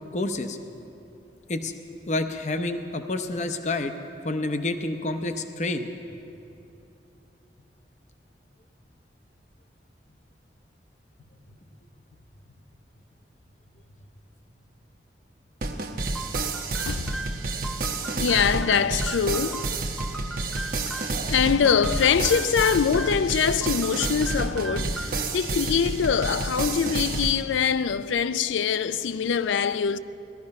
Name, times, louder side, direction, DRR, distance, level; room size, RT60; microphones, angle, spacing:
voice 1, 0.1-0.6 1.5-1.7 2.1-3.9 4.2-5.9, left 2 dB, 40° left, 0.7 m, -28 dB
sound 1, 15.6-27.3, right 3 dB, 50° right, 0.9 m, -30 dB
sound 2, 16.1-21.2 21.7-23.3 23.6-25.3, right 2 dB, ahead, 0.4 m, -38 dB
voice 2, 18.0-19.7 20.8-30.0, left 7 dB, 85° left, 0.4 m, -24 dB
sound 3, 18.7-19.0 21.1-21.3 22.1-22.3, right 3 dB, 75° right, 1.2 m, -43 dB
16.5 x 13.0 x 5.3 m
head